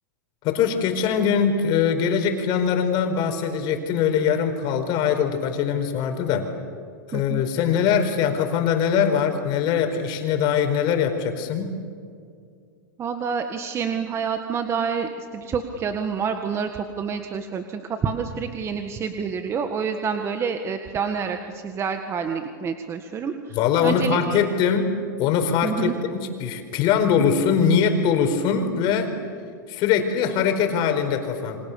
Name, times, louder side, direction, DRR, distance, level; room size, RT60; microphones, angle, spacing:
voice 1, 0.4-6.5 7.1-11.7 23.5-29.1 29.7-31.6, left 7 dB, 45° left, 5 dB, 4.7 m, -22 dB
voice 2, 7.1-7.4 13.0-23.6 23.8-24.4 25.6-26.0, right 6 dB, 25° right, 6 dB, 1.7 m, -28 dB
29.5 x 26.0 x 7.0 m, 2.3 s
hypercardioid pair, 125°, 11 cm